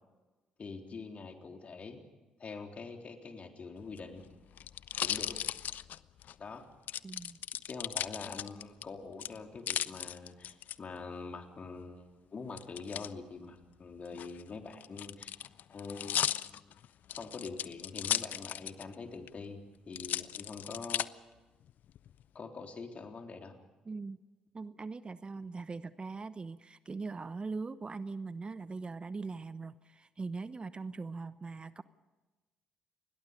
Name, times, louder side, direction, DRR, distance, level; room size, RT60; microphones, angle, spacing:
voice 1, 0.6-2.0 2.4-4.3 5.0-5.4 6.4-6.7 7.7-15.3 15.7-16.8 17.2-21.2 22.3-23.6, left 4 dB, 40° left, 4 dB, 3.7 m, -45 dB
sound 1, 3.8-6.3 6.9-8.8 9.2-10.7 12.6-13.1 14.0-18.9 19.3-19.4 19.9-21.1 21.7-22.2, left 10 dB, 60° left, 0.6 m, -36 dB
voice 2, 7.0-7.4 23.8-24.2 24.5-31.8, right 4 dB, 30° right, 15 dB, 0.9 m, -41 dB
29.0 x 21.5 x 5.2 m, 1.2 s
hypercardioid pair, 50°, 3 cm